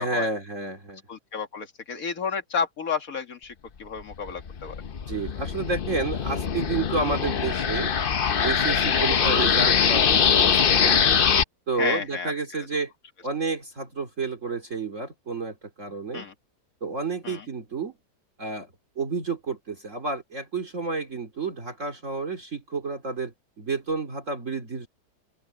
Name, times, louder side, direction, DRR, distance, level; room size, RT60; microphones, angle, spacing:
voice 1, 0.0-1.0 5.1-7.9 8.4-11.1 11.7-12.9 13.2-16.3 16.8-17.9 18.4-18.7 19.0-24.9, right 4 dB, 40° right, 2.7 m, -30 dB
voice 2, 1.1-3.5 3.8-4.8 8.9-9.0 11.8-12.3 16.1-16.3 17.2-17.4, left 6 dB, 45° left, 2.3 m, -31 dB
sound 1, 4.1-11.4, left 7 dB, 90° left, 0.4 m, -22 dB
open air
omnidirectional pair, 2.1 m